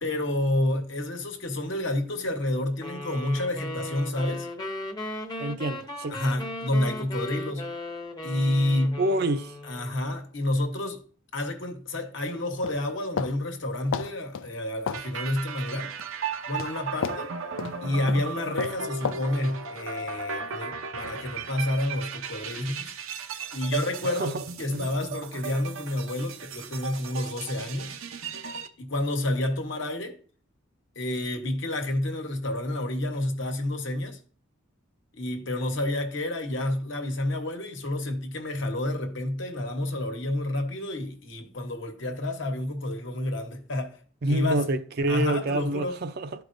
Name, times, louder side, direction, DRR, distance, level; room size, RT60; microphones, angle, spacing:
voice 1, 0.0-4.5 6.1-7.7 8.2-9.0 9.6-11.0 11.3-15.9 16.5-17.3 17.8-22.9 23.5-24.3 24.6-28.0 28.8-30.2 30.9-34.2 35.1-44.0 44.3-44.6 45.1-46.0, left 1 dB, 60° left, 1.1 m, -29 dB
sound 1, 2.8-10.0, left 1 dB, 20° left, 0.8 m, -37 dB
voice 2, 5.4-6.2 9.0-9.6 24.0-24.4 24.7-24.8 44.2-46.4, right 2 dB, 50° right, 0.5 m, -27 dB
sound 2, 12.6-13.4 13.9-14.5 14.9-15.1 15.8-16.1 16.6-16.7 17.0-17.2 17.6-17.8 18.1-18.3 18.6-18.8 19.0-19.2, left 6 dB, 85° left, 0.5 m, -31 dB
sound 3, 14.9-28.7, right 5 dB, 85° right, 0.7 m, -36 dB
12.0 x 4.8 x 2.6 m
head